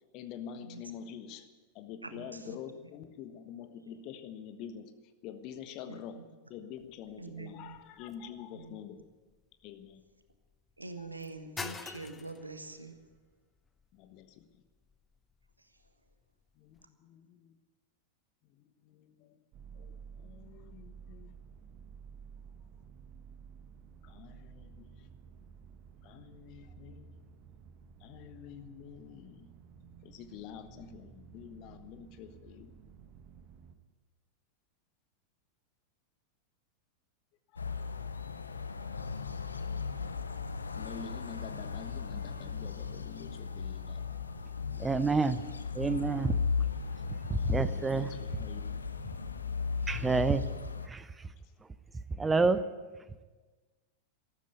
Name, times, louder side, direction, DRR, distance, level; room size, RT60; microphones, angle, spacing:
voice 1, 0.1-1.5 1.7-4.9 5.2-9.1 9.6-10.0 11.0-11.1 13.9-14.6 16.6-17.6 18.5-19.4 19.7-21.3 24.0-25.1 26.0-27.1 28.0-29.5 30.0-32.7 37.5-37.6 38.2-38.3 40.0-40.1 40.7-44.4 47.2-48.6, left 8 dB, 40° left, 9 dB, 1.3 m, -47 dB
voice 2, 2.0-2.6 5.9-6.2 7.2-7.8 8.5-8.7 10.8-13.0, right 3 dB, 85° right, 8 dB, 1.4 m, -45 dB
sound 1, 6.8-16.9, left 4 dB, 15° left, 0.9 m, -50 dB
sound 2, 19.5-33.7, right 6 dB, 40° right, 1.3 m, -53 dB
sound 3, 37.6-50.9, left 5 dB, 75° left, 0.8 m, -36 dB
voice 3, 44.8-45.4 45.7-46.4 47.3-48.1 49.9-50.4 50.9-51.3 52.2-52.6, right 4 dB, 15° right, 13 dB, 0.7 m, -28 dB
13.5 x 13.0 x 8.1 m, 1.3 s
figure-of-eight pair, 90°, 0 cm